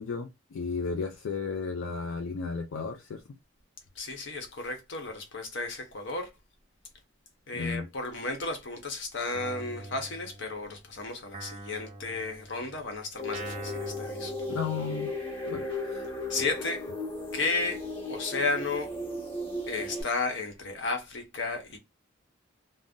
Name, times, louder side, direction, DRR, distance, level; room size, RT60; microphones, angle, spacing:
voice 1, 0.0-3.2 7.5-7.9 14.5-15.1 15.5-16.0, left 5 dB, 80° left, 0.4 m, -34 dB
voice 2, 4.0-6.3 7.5-14.3 16.3-16.9 17.3-17.8 18.1-18.9 19.7-21.8, left 3 dB, 60° left, 0.9 m, -33 dB
Guitar, 9.3-10.8 11.3-15.2, right 2 dB, 35° right, 0.5 m, -44 dB
sound 1, 13.2-20.0, left 2 dB, 25° left, 0.8 m, -36 dB
2.5 x 2.0 x 3.5 m
head